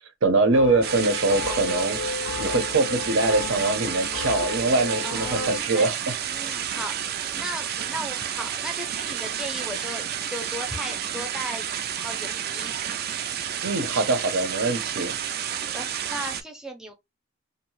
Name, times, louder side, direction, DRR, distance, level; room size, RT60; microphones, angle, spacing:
voice 1, 0.0-6.2 13.6-15.1, right 2 dB, 80° right, 0.7 m, -23 dB
sound 1, 0.5-5.6, left 5 dB, 70° left, 0.3 m, -33 dB
sound 2, 0.8-16.4, right 9 dB, 50° right, 0.4 m, -31 dB
voice 2, 5.0-5.9 6.3-10.0 10.3-11.7 12.0-12.7 15.7-16.9, equal, 5° right, 0.6 m, -36 dB
2.7 x 2.1 x 3.0 m
head